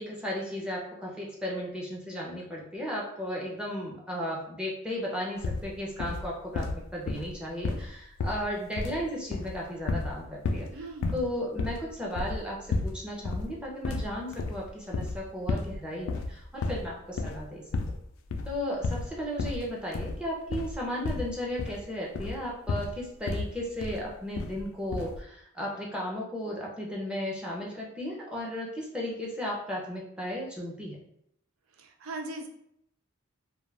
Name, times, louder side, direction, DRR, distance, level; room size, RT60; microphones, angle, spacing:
voice 1, 0.0-10.7 11.1-17.6 18.5-31.0, equal, 5° right, -4 dB, 0.6 m, -35 dB
sound 1, 5.4-5.7 6.0-6.3 6.5-7.9 8.2-9.0 9.3-10.2 10.4-10.7 11.0-11.3 11.6-13.0 13.2-13.5 13.8-15.2 15.5-15.8 16.0-16.9 17.2-17.5 17.7-18.0 18.3-18.6 18.8-19.1 19.4-19.6 19.9-20.2 20.5-20.8 21.0-21.8 22.1-22.4 22.7-23.0 23.3-23.5 23.8-24.1 24.4-24.6 24.9-25.2, left 3 dB, 75° left, 0.3 m, -32 dB
voice 2, 10.7-11.2 31.8-32.5, right 2 dB, 75° right, 5 dB, 0.5 m, -39 dB
2.3 x 2.2 x 3.3 m, 0.73 s
head